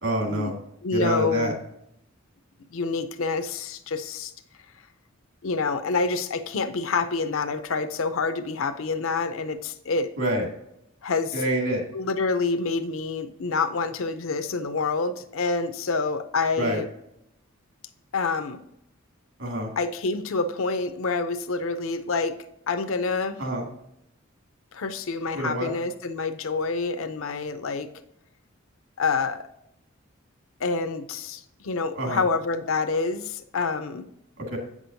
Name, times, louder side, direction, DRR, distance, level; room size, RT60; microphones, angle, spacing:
voice 1, 0.0-0.6 0.9-1.5 10.2-10.5 11.3-11.8 16.6-16.8 19.4-19.7 23.4-23.7 25.3-25.7 32.0-32.2 34.4-34.6, right 1 dB, 65° right, 1 dB, 2.2 m, -26 dB
voice 2, 0.8-1.6 2.7-4.3 5.4-10.1 11.0-11.4 11.9-16.9 18.1-18.6 19.8-22.4 22.7-23.4 24.7-27.9 29.0-29.5 30.6-34.0, left 4 dB, 75° left, 8 dB, 0.6 m, -27 dB
8.6 x 6.1 x 2.7 m, 0.79 s
head